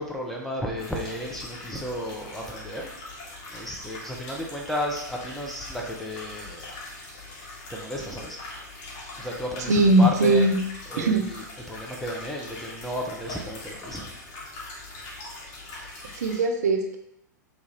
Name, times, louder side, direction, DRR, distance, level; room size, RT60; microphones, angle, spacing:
voice 1, 0.0-2.9 3.5-6.7 7.7-8.4 9.2-10.5 10.9-11.4 11.7-14.1, equal, 5° left, -1 dB, 0.6 m, -33 dB
sound 1, 0.8-16.4, left 2 dB, 35° left, 1.3 m, -42 dB
voice 2, 9.7-10.6 11.0-11.3 16.1-17.0, right 2 dB, 60° right, 5 dB, 0.4 m, -20 dB
3.2 x 2.4 x 3.8 m, 0.81 s
figure-of-eight pair, 95°, 10 cm